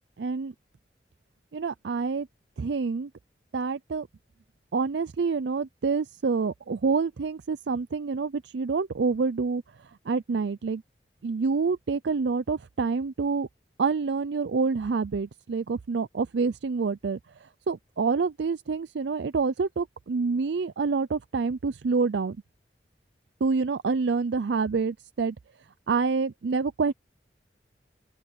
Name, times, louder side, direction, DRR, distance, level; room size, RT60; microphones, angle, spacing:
voice 1, 0.2-0.5 1.5-2.3 2.6-3.1 3.5-4.1 4.7-9.6 10.1-10.8 11.2-13.5 13.8-22.4 23.4-25.4 25.9-26.9, right 4 dB, 80° right, 0.5 m, -27 dB
open air
head